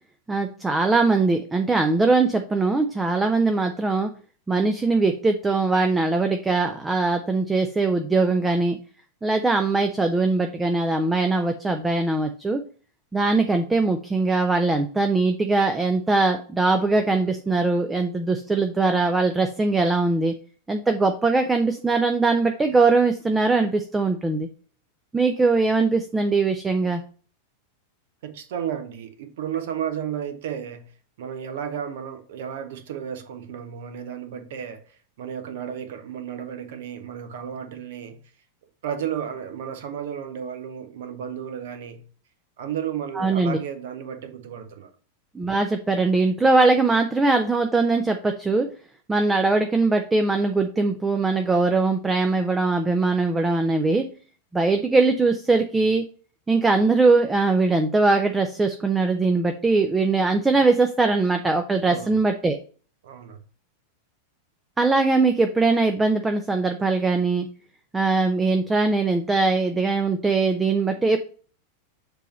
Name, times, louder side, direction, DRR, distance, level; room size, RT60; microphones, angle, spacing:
voice 1, 0.3-4.1 4.5-8.8 9.2-12.6 13.1-20.3 20.7-24.5 25.1-27.0 43.2-43.6 45.3-48.7 49.1-54.1 54.5-56.0 56.5-62.6 64.8-67.5 67.9-71.2, right 3 dB, 10° right, 0.5 m, -21 dB
voice 2, 28.2-30.9 31.2-34.8 35.2-38.2 38.8-42.0 42.6-44.9 61.8-62.1 63.0-63.4, right 8 dB, 55° right, 1.0 m, -33 dB
6.8 x 3.1 x 5.2 m
figure-of-eight pair, 90°, 0 cm